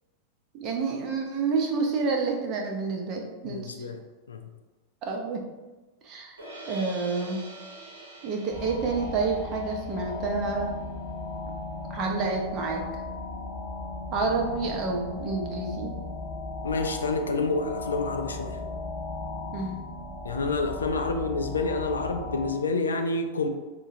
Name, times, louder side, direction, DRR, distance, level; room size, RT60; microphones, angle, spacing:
voice 1, 0.6-3.9 5.0-5.4 6.0-6.4 6.7-7.4 8.2-10.7 11.9-12.9 14.1-15.9 19.5-19.8, right 4 dB, 35° right, 1 dB, 0.6 m, -29 dB
voice 2, 3.4-4.0 4.3-4.4 16.6-18.6 20.2-23.5, left 3 dB, 70° left, 6 dB, 0.3 m, -28 dB
sound 1, 6.4-12.5, right 1 dB, 75° right, 0.8 m, -47 dB
sound 2, 8.5-22.5, left 2 dB, 10° left, 0.7 m, -36 dB
4.5 x 2.2 x 2.6 m, 1.2 s
figure-of-eight pair, 90°, 0 cm